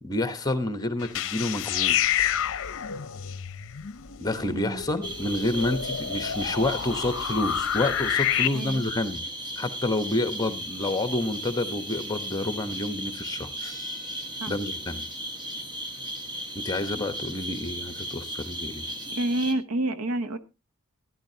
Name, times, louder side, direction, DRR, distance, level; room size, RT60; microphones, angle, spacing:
voice 1, 0.0-2.3 4.2-9.2 9.6-13.7 14.5-15.0 16.5-18.9, left 2 dB, 15° left, 10 dB, 1.1 m, -29 dB
sound 1, 1.0-8.5, left 10 dB, 60° left, 0.6 m, -29 dB
voice 2, 4.4-4.8 8.5-8.9 14.4-14.5 19.1-20.4, right 1 dB, 80° right, 12 dB, 0.9 m, -28 dB
sound 2, 5.0-19.5, right 1 dB, 20° right, 1.3 m, -36 dB
Bell, 13.6-15.2, right 1 dB, 60° right, 3.9 m, -47 dB
14.0 x 11.5 x 2.8 m, 0.26 s
head